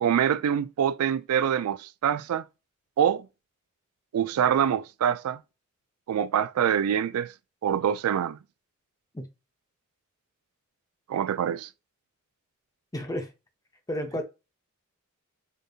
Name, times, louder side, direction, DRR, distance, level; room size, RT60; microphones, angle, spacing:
voice 1, 0.0-2.4 3.0-3.3 4.1-5.4 6.1-7.3 7.6-8.4 11.1-11.7, right 9 dB, 85° right, 0.3 m, -25 dB
voice 2, 12.9-13.3 13.9-14.2, left 1 dB, 15° left, 0.7 m, -31 dB
5.1 x 2.6 x 2.4 m
head